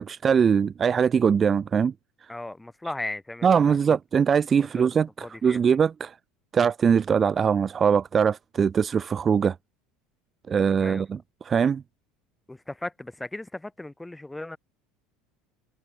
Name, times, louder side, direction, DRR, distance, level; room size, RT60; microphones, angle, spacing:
voice 1, 0.0-1.9 2.2-2.3 3.4-6.1 6.5-9.6 10.5-11.2 11.4-11.8, right 7 dB, 20° right, 1.8 m, -22 dB
voice 2, 2.3-4.2 4.6-5.6 10.6-11.0 12.5-14.6, left 2 dB, 5° left, 5.7 m, -37 dB
cardioid pair, 175°, 0 cm